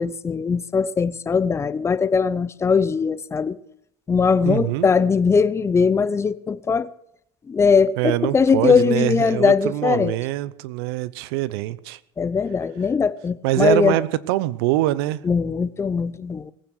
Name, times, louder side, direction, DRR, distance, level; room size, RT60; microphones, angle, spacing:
voice 1, 0.0-3.6 4.1-6.9 7.5-10.2 12.2-14.0 15.2-16.5, left 5 dB, 20° left, 0.6 m, -20 dB
voice 2, 4.4-4.9 8.0-12.0 13.4-15.2, right 16 dB, 75° right, 0.8 m, -23 dB
19.5 x 9.1 x 6.3 m
supercardioid pair, 100°, 13 cm